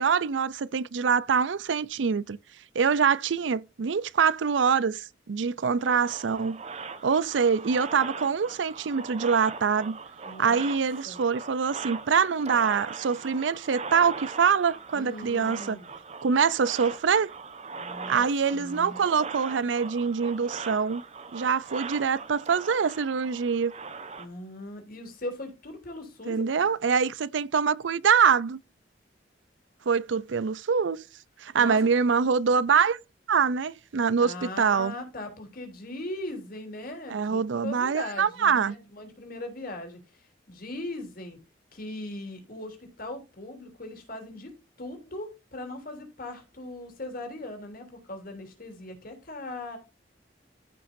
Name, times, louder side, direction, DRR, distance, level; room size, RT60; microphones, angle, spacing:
voice 1, 0.0-2.4 2.7-6.6 7.0-10.0 10.4-15.8 16.2-17.3 18.1-21.0 21.3-23.7 26.3-28.6 29.9-31.1 31.4-33.0 33.3-34.9 37.1-38.7, right 6 dB, 80° right, 0.5 m, -24 dB
sound 1, 5.8-24.3, right 5 dB, 35° right, 1.0 m, -40 dB
voice 2, 10.2-10.7 11.0-11.2 14.9-15.9 17.7-18.2 18.5-19.0 24.2-26.9 31.6-31.8 34.2-41.4 41.7-44.5 44.8-49.8, left 1 dB, 50° left, 3.3 m, -39 dB
14.5 x 5.7 x 2.6 m
head